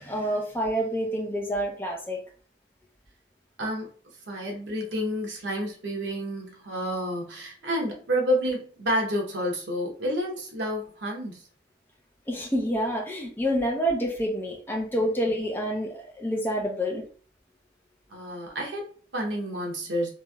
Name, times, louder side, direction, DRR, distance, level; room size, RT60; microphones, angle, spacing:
voice 1, 0.0-2.2 12.3-17.0, equal, 10° left, 0.6 m, -28 dB
voice 2, 4.3-11.4 18.1-20.1, equal, 80° right, 0.9 m, -29 dB
3.1 x 2.5 x 2.3 m
head